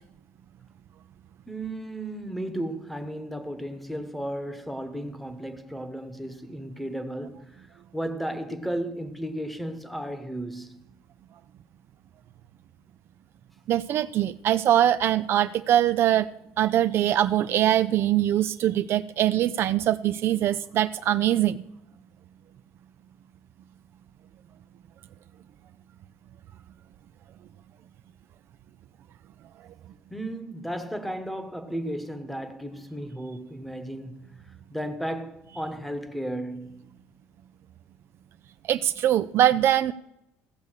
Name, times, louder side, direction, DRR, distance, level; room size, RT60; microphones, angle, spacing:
voice 1, 1.5-7.7 7.9-10.8 30.1-36.8, right 1 dB, ahead, 1.1 m, -34 dB
voice 2, 13.7-16.3 16.6-21.6 38.7-39.9, right 12 dB, 50° right, 0.4 m, -22 dB
16.0 x 6.8 x 6.4 m
cardioid pair, 140°, 5 cm